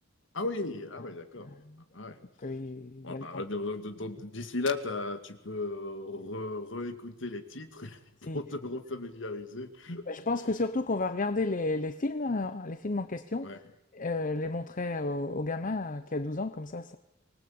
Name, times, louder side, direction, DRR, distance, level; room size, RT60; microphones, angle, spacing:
voice 1, 0.3-1.5 1.9-2.2 3.0-8.0 8.3-10.0 13.4-13.6, left 2 dB, 65° left, 2.2 m, -36 dB
voice 2, 1.4-1.8 2.4-3.4 8.3-8.4 10.1-13.6 13.9-17.0, left 2 dB, 40° left, 0.8 m, -32 dB
25.0 x 20.0 x 8.7 m
head